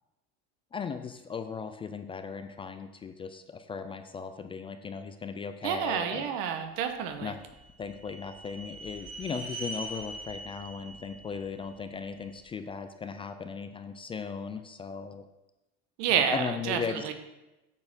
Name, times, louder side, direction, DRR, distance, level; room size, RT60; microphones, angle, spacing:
voice 1, 0.7-6.3 7.2-7.4 7.8-15.2 16.3-17.1, left 5 dB, 20° left, 9 dB, 0.3 m, -37 dB
voice 2, 5.6-7.3 16.0-17.1, right 8 dB, 75° right, 7 dB, 1.1 m, -29 dB
sound 1, 7.1-12.3, right 1 dB, 45° right, 2.0 m, -43 dB
8.7 x 4.4 x 6.0 m, 1.0 s
cardioid pair, 140°, 29 cm